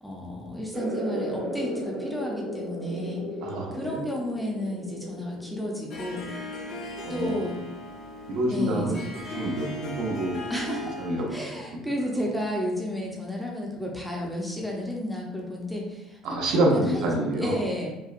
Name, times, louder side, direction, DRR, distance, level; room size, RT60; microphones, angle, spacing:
voice 1, 0.0-3.2 3.7-6.2 7.1-7.6 8.5-9.0 10.5-11.0 11.3-17.9, left 1 dB, 5° left, -2 dB, 0.6 m, -32 dB
sound 1, 0.7-7.9, right 1 dB, 30° right, 1.0 m, -36 dB
voice 2, 3.4-4.0 7.0-7.4 8.3-9.0 9.3-10.5 11.0-11.4 16.2-17.5, right 1 dB, 70° right, -1 dB, 0.8 m, -26 dB
Harp, 5.9-11.4, left 1 dB, 45° left, 0.6 m, -38 dB
5.4 x 2.2 x 2.5 m, 0.96 s
cardioid pair, 155°, 0 cm